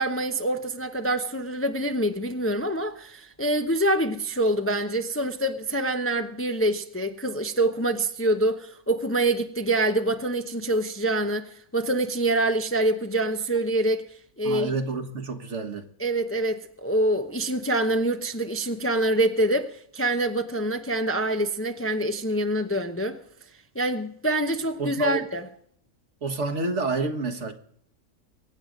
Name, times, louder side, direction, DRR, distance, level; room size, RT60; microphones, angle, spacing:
voice 1, 0.0-14.1 14.4-14.7 16.0-23.2 23.7-25.5, right 1 dB, 15° left, 0.6 m, -25 dB
voice 2, 14.4-15.9 24.8-25.2 26.2-27.5, right 3 dB, 60° right, 1.8 m, -29 dB
23.0 x 9.3 x 5.1 m
omnidirectional pair, 1.4 m